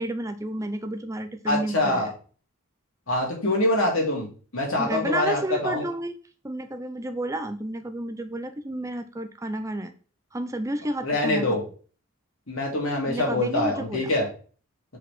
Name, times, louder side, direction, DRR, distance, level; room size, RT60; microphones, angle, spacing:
voice 1, 0.0-2.1 4.8-6.2 6.4-9.9 10.3-11.6 13.1-14.1, right 1 dB, 15° right, 8 dB, 0.6 m, -31 dB
voice 2, 1.5-2.1 3.1-4.3 4.5-5.8 11.0-11.6 12.5-14.3, left 1 dB, 70° left, -1 dB, 2.8 m, -24 dB
5.9 x 4.9 x 3.5 m, 0.39 s
head